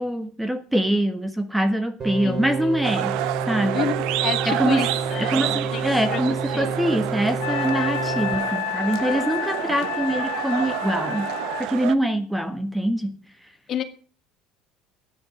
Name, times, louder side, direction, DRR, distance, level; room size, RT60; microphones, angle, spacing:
voice 1, 0.0-3.2 3.5-3.9 4.5-4.9 5.1-13.2, right 1 dB, 5° right, 1.5 m, -24 dB
sound 1, 2.0-8.3, right 3 dB, 35° right, 6.3 m, -29 dB
sound 2, 2.8-11.9, right 15 dB, 75° right, 0.8 m, -29 dB
voice 2, 4.2-5.8 6.1-6.2 6.5-6.7 13.7-13.8, left 9 dB, 45° left, 2.0 m, -29 dB
Wind instrument woodwind instrument, 7.4-11.7, left 14 dB, 90° left, 0.8 m, -30 dB
12.5 x 10.0 x 6.5 m
supercardioid pair, 115°, 0 cm